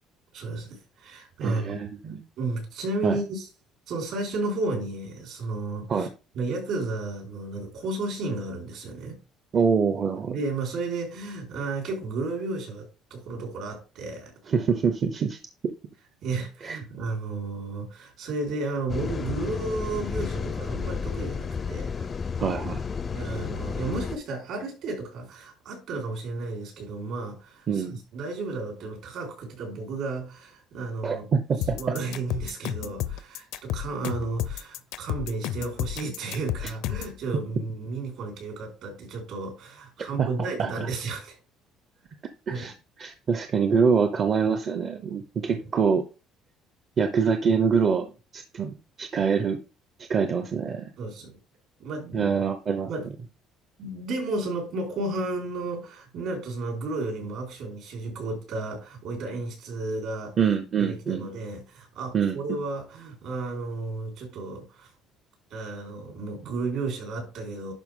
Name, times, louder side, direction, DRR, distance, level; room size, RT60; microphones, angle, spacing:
voice 1, 0.3-1.8 2.4-3.5 3.9-6.1 6.3-9.2 10.3-14.3 16.2-22.1 23.1-31.3 31.7-41.4 42.5-42.7 45.5-45.6 51.0-51.4 51.8-52.4 52.9-53.1 53.8-60.4 60.8-64.9 65.5-67.7, right 3 dB, 60° right, 4.6 m, -33 dB
voice 2, 1.4-2.2 3.0-3.2 5.9-6.1 9.5-10.3 14.5-15.4 16.6-16.8 22.4-22.8 27.7-28.0 31.0-31.8 40.2-40.3 40.6-40.9 42.5-46.0 47.0-48.1 48.3-49.6 50.0-50.9 52.1-52.9 60.4-61.3 62.1-62.4, right 6 dB, 35° right, 0.6 m, -25 dB
sound 1, 18.9-24.2, left 5 dB, 25° left, 0.4 m, -32 dB
sound 2, 31.6-37.2, left 13 dB, 80° left, 0.6 m, -31 dB
11.0 x 4.8 x 3.7 m
cardioid pair, 155°, 0 cm